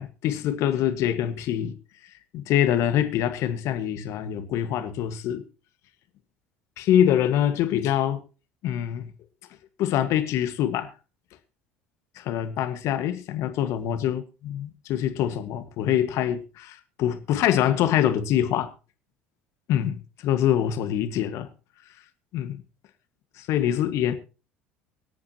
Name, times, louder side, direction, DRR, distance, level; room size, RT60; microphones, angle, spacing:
voice 1, 0.0-1.8 2.3-5.4 6.8-8.2 8.6-9.1 9.8-10.9 12.1-18.7 19.7-21.5 22.3-22.6 23.4-24.1, left 10 dB, 60° left, 1.6 m, -25 dB
24.5 x 8.5 x 3.0 m
hypercardioid pair, 65°, 6 cm